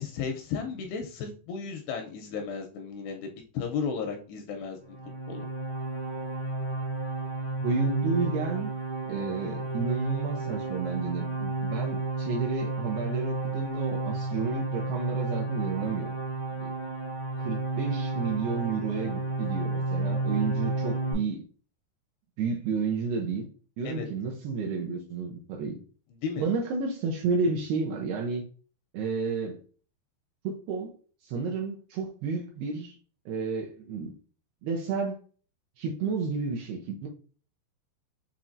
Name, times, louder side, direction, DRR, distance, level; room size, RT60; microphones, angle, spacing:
voice 1, 0.0-5.0 5.3-5.5 23.8-24.1 26.1-26.5, left 6 dB, 80° left, 2.5 m, -34 dB
sound 1, 4.9-21.1, right 2 dB, 60° left, 0.6 m, -32 dB
voice 2, 7.6-8.7 9.1-16.1 16.6-16.7 17.4-21.4 22.4-23.5 23.8-25.8 26.4-28.4 28.9-29.6 30.4-30.9 31.2-33.0 33.3-34.1 34.6-35.2 35.8-37.1, right 5 dB, 75° right, 2.4 m, -31 dB
7.1 x 2.9 x 2.5 m
omnidirectional pair, 5.2 m